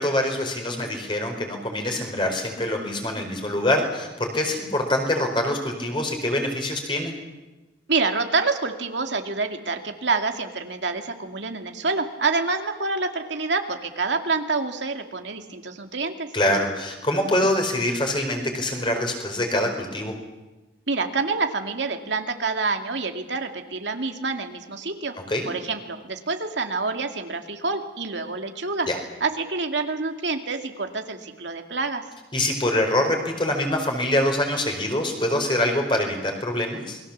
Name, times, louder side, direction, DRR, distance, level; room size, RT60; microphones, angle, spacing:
voice 1, 0.0-7.1 16.3-20.1 25.3-25.4 28.9-29.0 32.3-37.0, left 1 dB, 25° left, 3 dB, 4.6 m, -24 dB
voice 2, 7.9-16.3 20.9-25.1 25.5-28.9 29.2-32.0, right 4 dB, 75° right, 5 dB, 2.2 m, -27 dB
28.5 x 21.5 x 7.4 m, 1.1 s
head